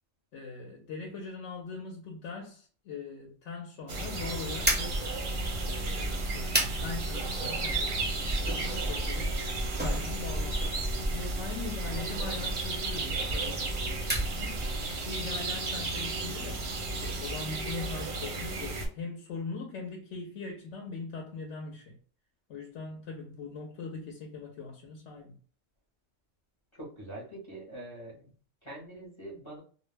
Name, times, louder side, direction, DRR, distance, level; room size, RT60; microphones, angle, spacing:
voice 1, 0.3-5.1 5.7-9.4 9.8-10.7 11.1-14.6 15.0-16.7 17.0-21.9 22.5-25.4, left 4 dB, 70° left, 0.9 m, -41 dB
sound 1, 3.9-18.9, right 3 dB, 55° right, 0.6 m, -34 dB
sound 2, 4.6-14.9, right 1 dB, 15° right, 0.3 m, -33 dB
voice 2, 26.7-28.3 28.6-29.6, right 1 dB, 30° left, 0.7 m, -44 dB
2.2 x 2.0 x 3.2 m
omnidirectional pair, 1.3 m